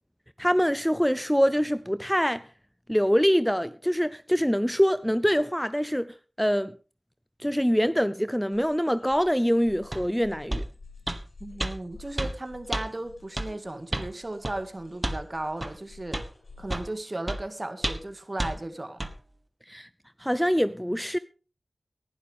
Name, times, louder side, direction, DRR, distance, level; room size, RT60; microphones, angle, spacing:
voice 1, 0.4-2.4 2.9-6.7 7.4-10.6 19.7-19.9 20.2-21.2, equal, 5° left, 0.6 m, -24 dB
sound 1, 8.5-16.9, left 4 dB, 90° left, 5.3 m, -52 dB
sound 2, 9.9-10.1 10.5-10.7 11.1-11.2 11.6-11.7 12.2-12.3 12.7-12.9 13.4-13.5 13.9-14.1 14.4-14.6 15.0-15.2 15.6-15.7 16.1-16.3 16.7-16.9 17.3-17.4 17.8-18.1 18.4-18.5 19.0-19.1, right 1 dB, 25° right, 1.4 m, -30 dB
voice 2, 11.4-16.2 16.6-19.0, right 2 dB, 40° right, 2.0 m, -35 dB
19.0 x 11.5 x 3.6 m
wide cardioid pair, 55°, 0 cm